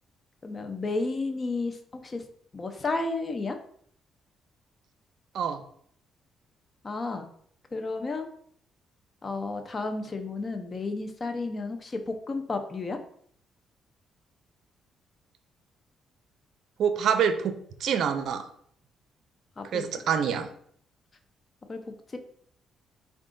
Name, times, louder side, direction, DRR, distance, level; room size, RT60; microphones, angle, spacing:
voice 1, 0.4-1.8 2.0-2.2 2.5-3.6 6.8-7.3 7.7-8.3 9.2-13.0 19.6-19.8 21.7-21.8 22.1-22.2, left 3 dB, 35° left, 6 dB, 0.6 m, -32 dB
voice 2, 16.8-17.5 17.8-18.5 19.7-20.5, right 7 dB, 70° right, 9 dB, 0.5 m, -26 dB
4.7 x 2.4 x 3.6 m, 0.62 s
cardioid pair, 90°, 0 cm